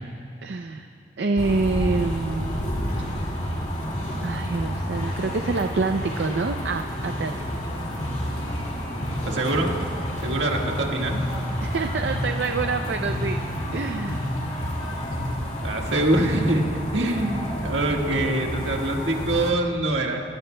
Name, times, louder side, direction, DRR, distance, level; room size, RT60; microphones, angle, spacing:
voice 1, 0.4-0.9 1.2-2.7 4.2-7.4 11.6-13.4 13.7-14.3, right 3 dB, 65° right, 6 dB, 0.5 m, -27 dB
sound 1, 1.4-19.5, equal, 40° left, 2.2 m, -29 dB
voice 2, 9.3-9.7 10.2-11.2 15.3-16.6 16.9-20.2, right 1 dB, 80° right, 1 dB, 1.6 m, -24 dB
24.0 x 17.0 x 2.2 m, 2.8 s
head